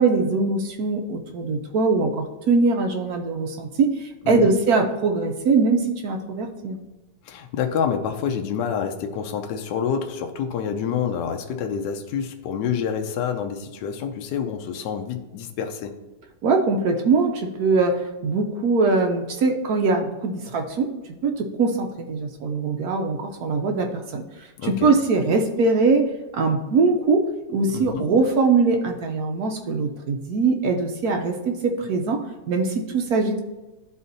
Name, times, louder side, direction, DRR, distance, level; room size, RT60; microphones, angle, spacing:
voice 1, 0.0-6.8 16.4-20.9 21.2-24.2 24.6-33.4, right 4 dB, 65° right, 3 dB, 1.0 m, -22 dB
voice 2, 7.2-15.9 24.6-24.9 27.7-28.1, left 7 dB, 70° left, 5 dB, 1.2 m, -27 dB
12.0 x 4.1 x 2.6 m, 1.1 s
omnidirectional pair, 2.0 m